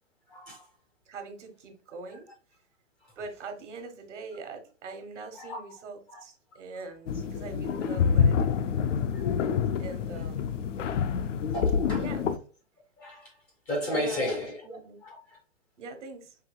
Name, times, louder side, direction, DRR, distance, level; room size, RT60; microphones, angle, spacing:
voice 1, 0.3-0.7 3.0-3.2 5.3-5.6 6.1-6.2 9.1-9.3 11.5-12.1 13.0-13.4 13.7-14.6 15.0-15.4, left 1 dB, 10° left, 0.3 m, -34 dB
voice 2, 1.1-2.3 3.2-8.5 9.8-10.7 11.9-12.2 13.9-14.2 14.6-15.0 15.8-16.4, right 4 dB, 75° right, 1.2 m, -43 dB
sound 1, 7.1-12.4, left 7 dB, 80° left, 0.6 m, -27 dB
4.8 x 2.9 x 2.2 m
hypercardioid pair, 135°, 36 cm